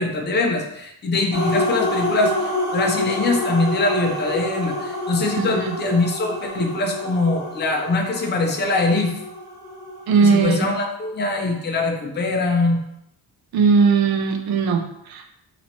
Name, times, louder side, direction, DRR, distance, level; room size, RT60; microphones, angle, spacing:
voice 1, 0.0-2.3 2.7-9.1 10.2-12.8, left 2 dB, 25° left, 2 dB, 0.5 m, -22 dB
sound 1, 1.3-10.4, left 1 dB, 10° right, 0.8 m, -28 dB
voice 2, 5.4-5.8 10.1-10.6 13.5-15.2, right 5 dB, 70° right, 4 dB, 0.6 m, -18 dB
2.9 x 2.8 x 4.2 m, 0.78 s
wide cardioid pair, 165°, 39 cm